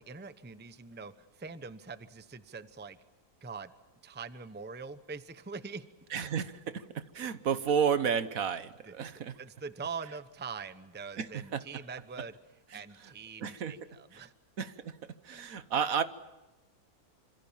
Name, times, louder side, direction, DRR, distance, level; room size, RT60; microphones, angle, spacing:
voice 1, 0.0-3.0 3.4-3.7 4.0-5.9 8.8-9.1 9.4-12.4 12.7-14.3, right 5 dB, 10° right, 13 dB, 0.7 m, -43 dB
voice 2, 6.1-9.4 11.2-11.6 12.7-12.8 13.4-14.3 14.6-15.0 15.2-16.0, right 7 dB, 65° right, 13 dB, 1.5 m, -32 dB
27.0 x 26.5 x 7.3 m, 1.1 s
omnidirectional pair, 1.6 m